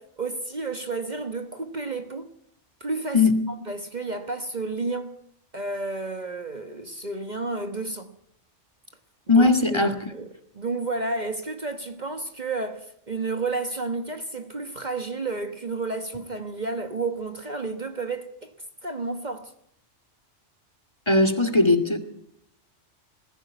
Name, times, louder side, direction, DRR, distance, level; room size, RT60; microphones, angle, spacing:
voice 1, 0.0-2.3 2.8-3.2 3.7-5.2 5.5-8.2 9.3-10.3 10.5-18.5 18.8-19.5, right 3 dB, 35° right, 1.5 m, -31 dB
voice 2, 9.3-10.0 21.1-22.0, left 2 dB, 20° left, 2.0 m, -19 dB
21.0 x 15.5 x 9.3 m
omnidirectional pair, 1.2 m